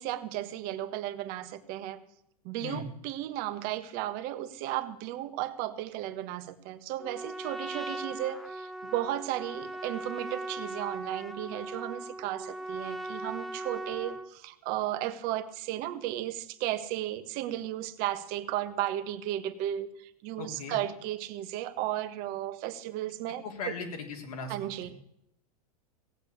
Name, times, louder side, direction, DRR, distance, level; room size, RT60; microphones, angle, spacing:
voice 1, 0.0-2.0 2.4-23.4 24.5-24.9, right 13 dB, 50° right, 10 dB, 1.5 m, -34 dB
Trumpet, 7.0-14.3, right 1 dB, ahead, 1.1 m, -39 dB
voice 2, 20.4-20.8 23.4-24.6 24.8-24.9, left 4 dB, 75° left, 1 dB, 3.7 m, -38 dB
17.0 x 8.2 x 8.4 m, 0.76 s
hypercardioid pair, 100°, 20 cm